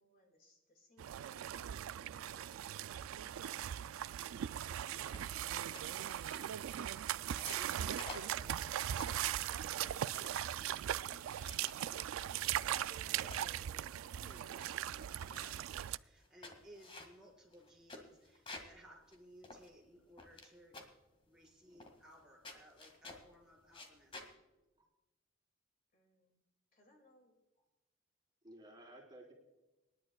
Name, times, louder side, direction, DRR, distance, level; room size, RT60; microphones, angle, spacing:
voice 1, 0.0-3.8 4.9-5.7 25.9-26.4 26.7-27.6, left 2 dB, 45° left, 2 dB, 2.2 m, -69 dB
sound 1, 1.0-16.0, right 11 dB, 80° right, 0.3 m, -39 dB
sound 2, 5.1-5.4 5.7-6.7 7.2-9.3 9.8-10.7 11.1-11.9 12.5-13.5 14.0-14.1 14.3-14.7 15.0-15.7 16.2-18.8 19.1-19.2 19.4-20.5 20.7-21.0 21.8-22.2 22.4-23.3 23.7-24.3, left 2 dB, 25° left, 1.9 m, -52 dB
voice 2, 7.3-20.8 21.3-24.4, right 1 dB, 5° right, -4 dB, 4.5 m, -61 dB
voice 3, 28.4-29.3, right 1 dB, 20° right, -2 dB, 3.8 m, -56 dB
27.0 x 11.0 x 2.3 m, 1.0 s
head